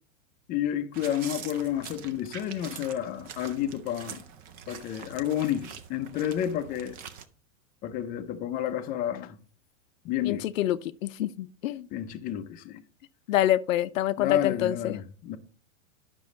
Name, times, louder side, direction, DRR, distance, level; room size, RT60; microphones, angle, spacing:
voice 1, 0.5-4.2 4.7-7.0 7.8-9.4 10.0-10.4 11.9-12.8 14.2-15.4, left 11 dB, 20° left, 0.6 m, -30 dB
sound 1, 0.9-7.2, right 8 dB, 25° right, 0.4 m, -44 dB
voice 2, 10.2-11.9 13.3-15.0, left 13 dB, 80° left, 0.6 m, -27 dB
9.4 x 6.2 x 3.9 m
hypercardioid pair, 140°, 40 cm